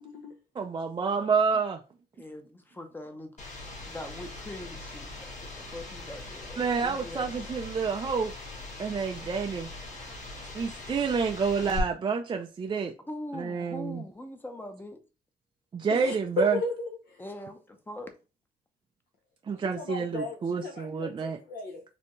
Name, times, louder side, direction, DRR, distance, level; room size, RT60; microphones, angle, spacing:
voice 1, 0.6-1.8 6.6-8.3 8.8-9.7 10.5-12.9 13.3-14.0 15.7-16.6 19.5-21.4, right 5 dB, 30° right, 0.4 m, -28 dB
voice 2, 2.1-3.3 3.9-5.3 5.6-7.3 10.1-10.5 13.1-15.0 17.2-18.1 19.7-19.9, left 1 dB, 10° left, 0.7 m, -42 dB
sound 1, 3.4-11.8, left 2 dB, 45° left, 1.5 m, -41 dB
voice 3, 15.9-17.2 19.8-21.8, left 3 dB, 70° left, 0.8 m, -34 dB
4.3 x 2.8 x 3.0 m
cardioid pair, 130°, 17 cm